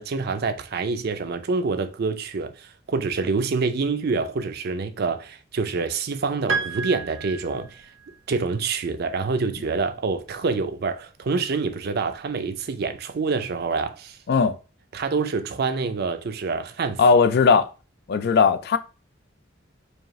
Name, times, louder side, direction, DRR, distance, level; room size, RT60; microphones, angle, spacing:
voice 1, 0.0-7.9 8.3-14.2 14.9-17.0, right 4 dB, 50° right, 0.5 m, -26 dB
Piano, 6.5-8.2, right 4 dB, 90° right, 0.7 m, -30 dB
voice 2, 17.0-17.7 18.1-18.8, left 5 dB, 55° left, 0.4 m, -18 dB
4.8 x 2.4 x 3.0 m
head